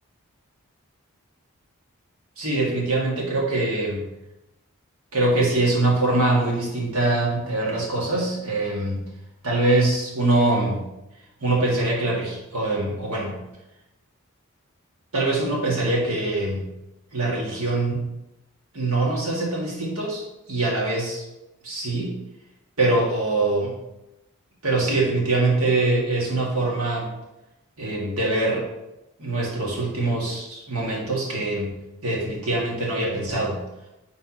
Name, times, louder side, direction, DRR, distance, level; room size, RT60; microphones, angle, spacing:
voice 1, 2.4-4.0 5.1-9.0 9.4-10.8 11.4-13.4 15.1-16.6 17.1-18.0 18.7-20.2 20.5-21.2 21.6-22.1 22.8-23.7 24.6-27.1 27.8-28.6 29.2-31.7 32.0-33.6, right 2 dB, 80° right, -3 dB, 1.9 m, -23 dB
10.0 x 4.0 x 2.9 m, 0.93 s
head